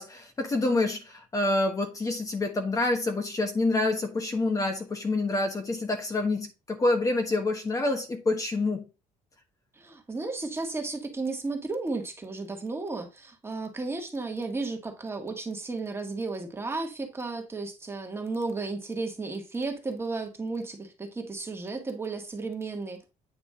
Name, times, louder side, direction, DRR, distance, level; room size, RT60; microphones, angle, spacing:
voice 1, 0.0-8.9, left 2 dB, 25° left, 1.3 m, -27 dB
voice 2, 9.8-23.0, right 3 dB, 15° right, 1.7 m, -33 dB
9.2 x 5.0 x 3.7 m
cardioid pair, 125°, 14 cm